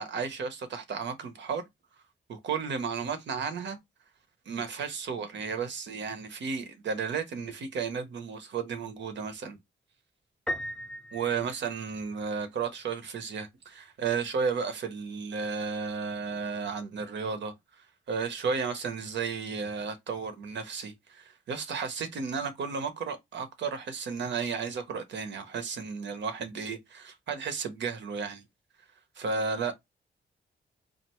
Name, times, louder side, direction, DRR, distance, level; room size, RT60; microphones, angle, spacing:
voice 1, 0.0-1.6 2.3-3.8 4.5-9.6 11.1-17.5 18.1-28.4 29.2-29.7, right 5 dB, 75° right, 0.8 m, -33 dB
Piano, 10.5-12.3, left 1 dB, 5° left, 0.4 m, -37 dB
4.4 x 2.5 x 3.0 m
wide cardioid pair, 150°, 19 cm